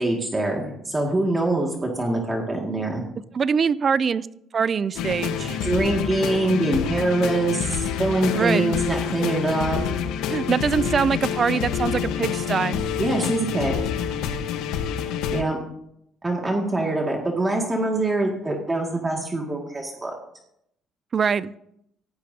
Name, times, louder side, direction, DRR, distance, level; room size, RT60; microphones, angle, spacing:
voice 1, 0.0-3.1 5.6-9.8 13.0-13.8 15.3-15.6 16.2-20.1, right 2 dB, 15° right, 0 dB, 2.1 m, -24 dB
voice 2, 3.3-4.3 4.5-5.6 8.3-8.7 10.3-12.8 21.1-21.5, right 6 dB, 35° right, 18 dB, 0.4 m, -23 dB
sound 1, 4.9-15.4, left 8 dB, 90° left, 1.2 m, -27 dB
17.5 x 16.0 x 2.8 m, 0.77 s
cardioid pair, 140°, 0 cm